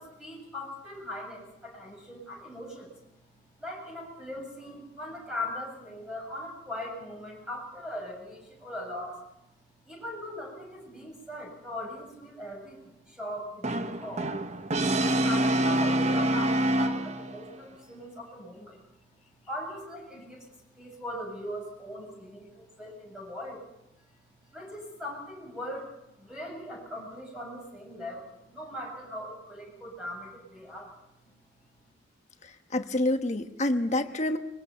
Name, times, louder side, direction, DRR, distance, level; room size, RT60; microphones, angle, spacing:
voice 1, 0.0-3.1 3.6-9.2 9.9-14.3 14.6-18.8 19.5-20.5 20.7-23.6 24.5-25.9 26.2-30.9 31.2-31.3, left 1 dB, 5° right, -1 dB, 7.7 m, -40 dB
Brass instrument, 13.6-17.4, right 1 dB, 35° right, 0.9 m, -26 dB
voice 2, 32.4-34.4, left 1 dB, 40° left, 7 dB, 1.3 m, -28 dB
24.5 x 22.0 x 5.7 m, 0.86 s
head